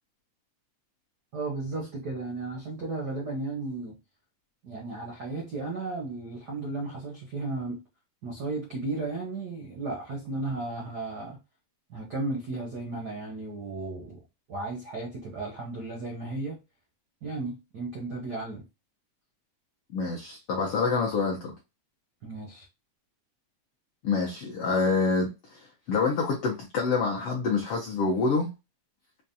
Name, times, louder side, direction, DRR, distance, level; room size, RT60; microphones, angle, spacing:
voice 1, 1.3-3.9 4.6-7.8 8.2-11.4 11.9-14.2 14.5-16.6 17.2-18.6 22.2-22.6, right 3 dB, 85° right, 0.9 m, -34 dB
voice 2, 19.9-21.5 24.0-28.5, left 4 dB, 80° left, 1.3 m, -27 dB
5.6 x 2.2 x 2.6 m
omnidirectional pair, 3.5 m